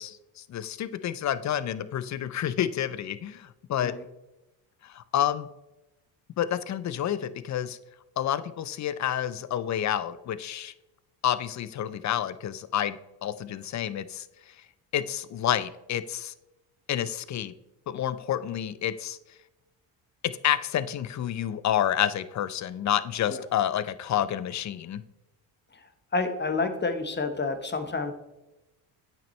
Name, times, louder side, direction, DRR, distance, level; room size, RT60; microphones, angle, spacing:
voice 1, 0.0-3.9 4.8-5.5 6.4-7.8 8.2-10.7 11.2-13.0 13.2-14.2 14.9-16.3 16.9-17.5 17.9-19.2 20.4-25.0, left 10 dB, 35° left, 15 dB, 0.5 m, -29 dB
voice 2, 26.1-28.1, left 3 dB, 20° left, 7 dB, 1.1 m, -29 dB
8.8 x 6.0 x 3.2 m, 0.99 s
supercardioid pair, 75°, 49 cm